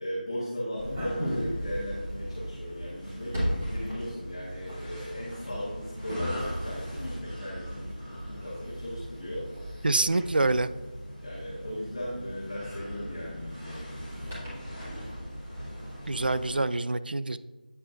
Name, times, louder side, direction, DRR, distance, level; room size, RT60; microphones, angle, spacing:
voice 1, 0.0-10.1 11.2-13.8, equal, 40° left, -8 dB, 1.4 m, -37 dB
sound 1, 0.8-16.5, equal, 15° right, 1.8 m, -37 dB
sound 2, 3.5-9.5, equal, 25° left, 1.2 m, -54 dB
voice 2, 9.8-10.7 16.1-17.4, right 2 dB, 90° right, 13 dB, 0.4 m, -26 dB
8.7 x 4.3 x 2.6 m, 1.2 s
figure-of-eight pair, 180°, 5 cm